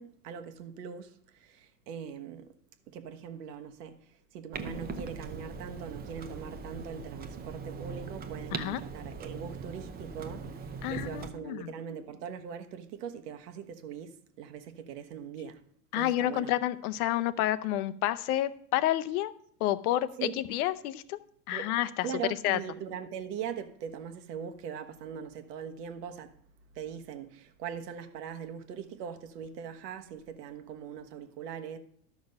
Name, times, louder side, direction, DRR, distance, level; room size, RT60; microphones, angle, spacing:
voice 1, 0.0-2.5 2.9-15.6 15.9-16.5 20.2-20.4 21.5-21.7 22.0-26.4 26.7-31.8, right 7 dB, 75° right, 1.3 m, -41 dB
Clock, 4.5-11.3, right 5 dB, 20° right, 0.7 m, -40 dB
voice 2, 10.8-11.7 15.9-19.3 19.6-21.2 21.5-22.1 22.4-22.6, left 13 dB, 65° left, 0.8 m, -29 dB
12.0 x 6.2 x 5.2 m
supercardioid pair, 130°, 48 cm